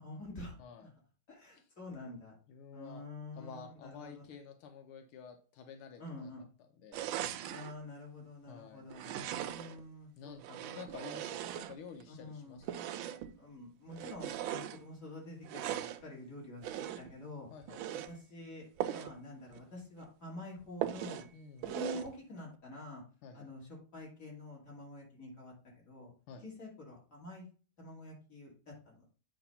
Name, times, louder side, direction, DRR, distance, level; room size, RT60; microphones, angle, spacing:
voice 1, 0.0-0.9 1.3-2.3 2.7-4.3 6.0-6.4 7.5-10.7 12.1-12.6 13.4-17.5 17.9-21.3 21.6-23.0 23.3-26.1 26.4-27.5 27.8-29.1, left 2 dB, 35° left, -3 dB, 3.2 m, -48 dB
voice 2, 2.5-3.0 3.4-6.3 6.6-7.0 8.5-8.9 10.2-12.7 17.5-17.9 21.3-21.7 23.2-23.5 26.3-26.4, left 6 dB, 85° left, 5 dB, 1.7 m, -50 dB
sound 1, 6.9-7.7 8.9-9.8 10.4-12.1 12.6-13.3 13.9-14.8 15.4-16.0 16.6-17.2 17.6-18.1 18.8-19.2 19.5-19.6 20.0-20.1 20.8-21.3 21.6-22.1, right 11 dB, 75° right, 1.3 m, -39 dB
8.8 x 3.3 x 5.5 m, 0.38 s
omnidirectional pair, 2.3 m